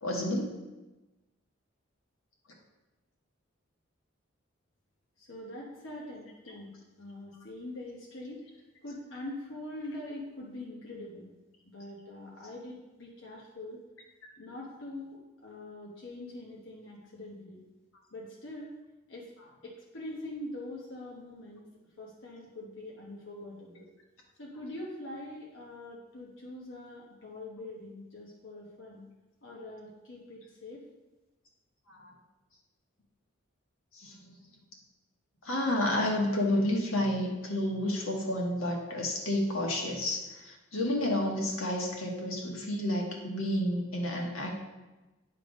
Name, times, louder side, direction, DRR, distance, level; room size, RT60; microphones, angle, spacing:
voice 1, 0.0-0.5 31.9-32.1 33.9-34.3 35.4-44.5, left 1 dB, 85° left, -1 dB, 1.5 m, -30 dB
voice 2, 5.2-6.7 7.0-11.3 11.6-13.8 14.4-17.6 18.1-18.7 19.1-19.3 19.6-21.7 22.0-23.9 24.4-29.0 29.4-30.8, left 1 dB, 65° left, -4 dB, 1.1 m, -43 dB
9.7 x 3.4 x 5.2 m, 1.1 s
head